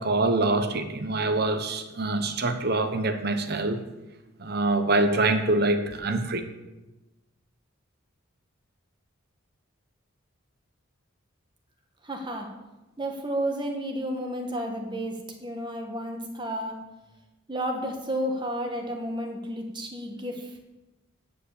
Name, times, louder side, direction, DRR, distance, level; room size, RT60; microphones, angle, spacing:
voice 1, 0.0-3.8 4.4-6.4, right 2 dB, 50° right, 0.9 m, -25 dB
voice 2, 12.0-12.5 13.0-16.8 17.5-20.5, equal, 20° right, 1.4 m, -32 dB
9.3 x 5.6 x 8.1 m
head